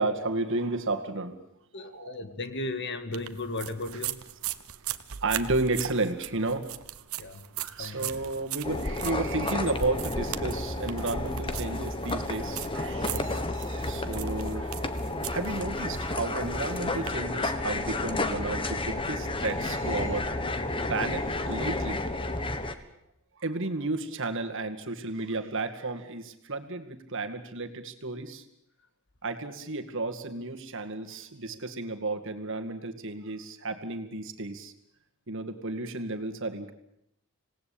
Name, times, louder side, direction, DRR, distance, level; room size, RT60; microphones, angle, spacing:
voice 1, 0.0-1.4 1.8-2.2 5.2-6.7 7.6-13.4 13.7-15.0 15.3-20.3 20.9-22.0 22.5-22.6 23.4-28.5 29.2-34.7 35.3-36.7, right 2 dB, 60° right, 6 dB, 2.2 m, -32 dB
voice 2, 1.7-4.2 7.2-8.1 13.1-13.5, left 2 dB, 55° left, 9 dB, 2.0 m, -36 dB
sound 1, 3.1-17.1, right 12 dB, 75° right, 1.1 m, -40 dB
sound 2, 8.6-22.7, left 2 dB, 25° left, 1.5 m, -31 dB
26.5 x 18.5 x 8.8 m, 0.81 s
head